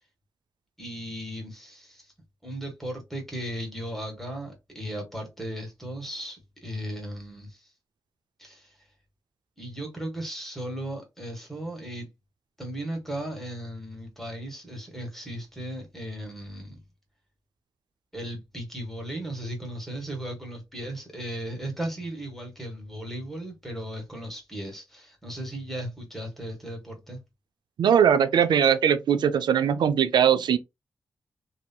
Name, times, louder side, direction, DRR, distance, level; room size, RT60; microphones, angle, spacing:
voice 1, 0.8-2.1 2.4-7.7 8.4-8.8 9.6-12.1 12.6-16.8 18.1-27.2, right 1 dB, 5° left, 1.4 m, -36 dB
voice 2, 27.8-30.6, right 8 dB, 75° right, 0.4 m, -20 dB
2.7 x 2.6 x 2.2 m
supercardioid pair, 45°, 8 cm